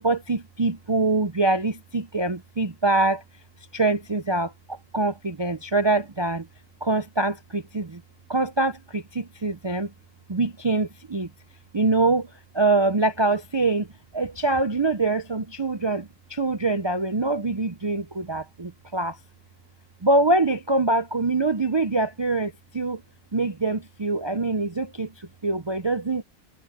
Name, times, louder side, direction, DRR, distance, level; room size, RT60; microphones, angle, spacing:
voice 1, 0.0-3.2 3.7-6.5 6.8-8.0 8.3-9.9 10.3-11.3 11.7-12.3 12.5-13.9 14.1-19.2 20.0-23.0 23.3-26.2, right 3 dB, 45° right, 0.3 m, -24 dB
omnidirectional pair, 1.4 m